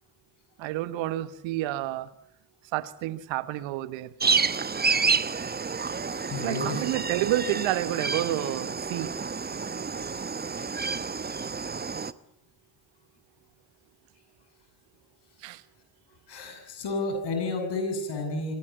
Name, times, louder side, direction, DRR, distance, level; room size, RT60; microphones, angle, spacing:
voice 1, 0.6-2.1 2.7-4.1 6.4-9.1 15.4-15.6, right 14 dB, 65° right, 15 dB, 1.4 m, -29 dB
sound 1, 4.2-12.1, right 5 dB, 20° right, 1.0 m, -29 dB
voice 2, 6.1-6.8 16.3-18.6, left 2 dB, 55° left, 5 dB, 8.0 m, -31 dB
24.5 x 19.0 x 9.5 m, 0.75 s
hypercardioid pair, 50°, 49 cm